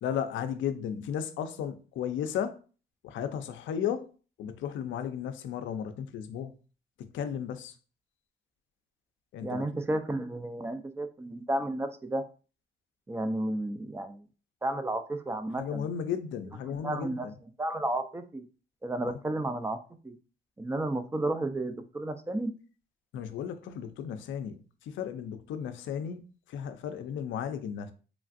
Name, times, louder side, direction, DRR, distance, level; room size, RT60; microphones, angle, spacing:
voice 1, 0.0-2.6 3.0-4.1 4.4-6.5 7.0-7.7 9.3-9.6 15.6-17.3 19.0-19.1 23.1-26.2 26.5-27.9, left 8 dB, 75° left, 0.4 m, -34 dB
voice 2, 9.4-12.2 13.1-14.2 14.6-15.9 16.7-17.3 17.6-18.5 18.8-19.8 20.0-20.2 20.6-22.5, right 1 dB, 15° right, 0.3 m, -32 dB
3.1 x 2.4 x 2.5 m
cardioid pair, 90°, 20 cm